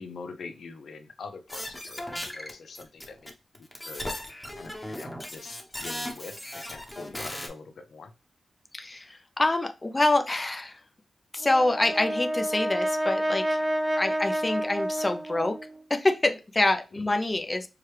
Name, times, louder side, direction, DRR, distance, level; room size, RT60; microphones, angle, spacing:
voice 1, 0.0-4.1 4.6-8.1 16.9-17.0, left 4 dB, 80° left, 7 dB, 0.6 m, -44 dB
sound 1, 1.5-3.3 3.5-7.5, left 1 dB, 10° left, 0.9 m, -37 dB
voice 2, 8.7-10.8 11.3-13.6 14.0-15.6 15.9-17.7, left 2 dB, 25° left, 7 dB, 0.5 m, -26 dB
Brass instrument, 11.4-15.8, equal, 25° right, 0.5 m, -29 dB
4.7 x 2.3 x 3.2 m, 0.30 s
wide cardioid pair, 95°, 0 cm